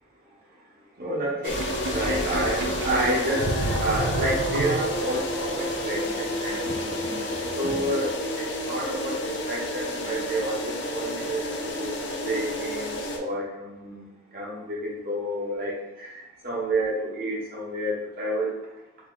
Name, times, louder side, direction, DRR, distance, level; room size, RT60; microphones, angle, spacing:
voice 1, 1.0-3.5 3.8-7.1 7.6-11.9 12.2-18.6, right 1 dB, 50° right, -4 dB, 1.0 m, -30 dB
sound 1, 1.4-13.2, left 1 dB, 60° left, 0.5 m, -31 dB
sound 2, 1.5-8.2, right 1 dB, 5° left, 0.9 m, -36 dB
Sink (filling or washing), 1.5-5.2, right 2 dB, 75° right, 0.4 m, -31 dB
4.1 x 2.7 x 2.4 m, 0.94 s
head